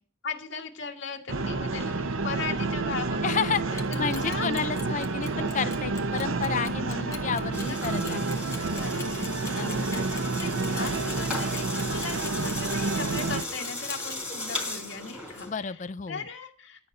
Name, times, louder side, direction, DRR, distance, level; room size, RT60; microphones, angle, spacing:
voice 1, 0.2-4.5 7.1-7.2 7.7-8.2 8.7-15.8 16.1-16.9, left 5 dB, 70° left, 1.9 m, -38 dB
sound 1, 1.3-13.4, right 3 dB, 80° right, 0.8 m, -29 dB
voice 2, 3.2-8.4 9.6-9.9 15.4-16.3, left 6 dB, 35° left, 0.4 m, -31 dB
Clock, 3.7-14.2, left 5 dB, 15° left, 1.0 m, -42 dB
sound 2, 7.5-15.5, left 2 dB, 5° right, 4.1 m, -37 dB
11.5 x 5.4 x 7.8 m
head